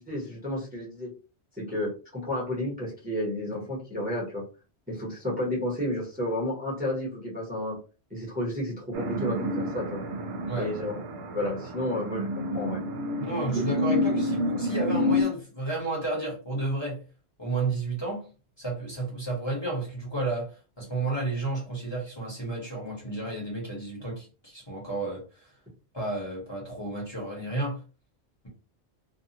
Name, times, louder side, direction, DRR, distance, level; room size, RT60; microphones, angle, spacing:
voice 1, 0.1-1.1 1.6-4.4 4.9-7.8 8.1-10.0 10.6-11.0 11.3-12.8 13.5-13.6, left 1 dB, 10° right, 0.9 m, -31 dB
sound 1, 8.9-15.2, left 1 dB, 75° right, 0.8 m, -29 dB
voice 2, 13.2-17.0 17.4-18.3 18.6-20.5 20.8-25.5 25.9-27.8, right 2 dB, 25° left, 1.1 m, -32 dB
2.5 x 2.3 x 2.8 m
omnidirectional pair, 1.1 m